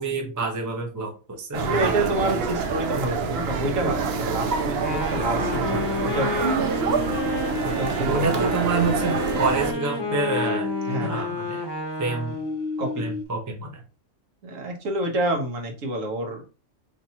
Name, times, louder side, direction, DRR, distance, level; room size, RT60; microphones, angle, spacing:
voice 1, 0.0-2.2 8.0-11.7 12.0-12.4 13.0-13.8, right 3 dB, 20° right, 1 dB, 0.5 m, -28 dB
sound 1, 1.5-9.7, right 5 dB, 60° right, 0.7 m, -26 dB
voice 2, 1.5-6.8 7.6-8.5 10.9-11.3 12.8-13.1 14.4-16.4, right 1 dB, 80° right, 3 dB, 1.4 m, -28 dB
sound 2, 3.6-4.9 5.3-11.4 11.6-13.2, left 4 dB, 70° left, 0.4 m, -34 dB
Wind instrument woodwind instrument, 4.7-12.6, left 2 dB, 20° left, 0.9 m, -31 dB
4.2 x 3.3 x 2.7 m, 0.33 s
omnidirectional pair, 1.3 m